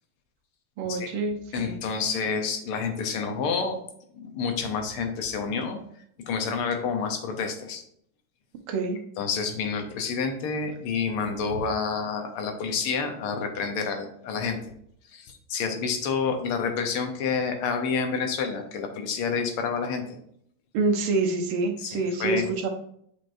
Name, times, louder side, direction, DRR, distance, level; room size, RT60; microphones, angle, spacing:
voice 1, 0.8-1.8 8.7-9.0 20.7-22.7, right 3 dB, 80° right, 4 dB, 1.8 m, -26 dB
voice 2, 1.5-3.8 4.1-5.8 6.2-7.8 9.2-14.6 15.1-20.2 21.8-22.5, left 5 dB, 85° left, 5 dB, 1.8 m, -29 dB
7.4 x 5.1 x 2.6 m, 0.69 s
omnidirectional pair, 2.4 m